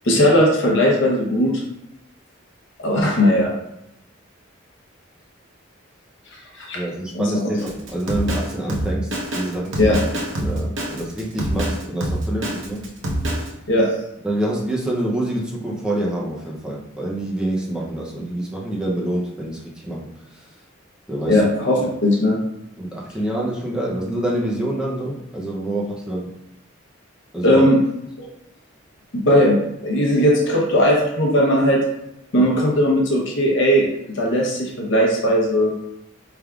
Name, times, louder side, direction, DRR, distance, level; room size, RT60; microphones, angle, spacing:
voice 1, 0.0-1.6 2.8-3.5 6.5-6.8 7.1-7.3 9.8-10.0 13.7-13.9 21.3-22.4 27.4-27.8 28.2-28.3 29.1-29.6 29.8-31.8 32.3-35.7, equal, 60° left, -2 dB, 0.8 m, -18 dB
voice 2, 6.7-10.0 10.4-12.9 13.4-13.5 14.2-20.6 21.1-21.5 22.8-26.3 27.3-27.7, right 1 dB, 5° right, -4 dB, 0.6 m, -26 dB
Drum kit, 7.6-13.5, right 1 dB, 70° right, 0.9 m, -25 dB
4.7 x 3.4 x 2.4 m, 0.81 s
head